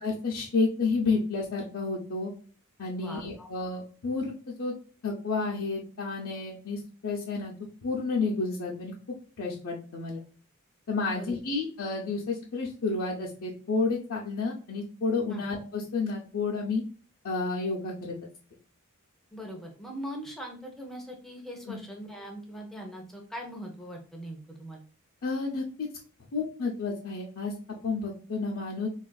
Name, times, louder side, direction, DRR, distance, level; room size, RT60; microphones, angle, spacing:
voice 1, 0.0-2.3 2.8-4.7 5.0-7.5 7.8-8.9 9.4-10.2 10.9-16.8 17.2-18.3 21.7-21.8 25.2-25.6 26.3-27.5 27.8-28.9, left 4 dB, 65° left, -4 dB, 0.5 m, -30 dB
voice 2, 3.0-3.5 11.1-11.4 15.3-15.4 19.3-24.8, equal, ahead, 0 dB, 0.6 m, -41 dB
3.4 x 2.3 x 2.2 m, 0.40 s
head